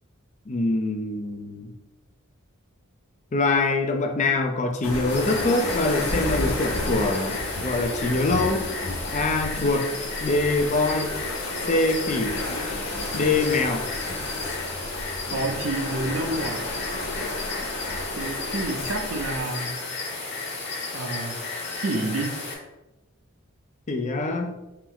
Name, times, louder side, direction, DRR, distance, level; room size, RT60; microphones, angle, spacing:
voice 1, 0.5-1.7 3.3-8.7 9.1-9.9 10.2-11.1 11.7-12.4 13.1-13.9 23.9-24.6, left 2 dB, 35° left, 4 dB, 0.4 m, -24 dB
sound 1, 4.8-19.4, left 1 dB, 85° left, 0.9 m, -32 dB
sound 2, 5.1-22.6, left 3 dB, 50° left, 1.4 m, -33 dB
voice 2, 15.3-16.6 18.1-19.8 20.9-21.4 21.7-22.4, right 2 dB, 75° right, 4 dB, 0.6 m, -29 dB
4.4 x 2.1 x 3.8 m, 1.0 s
head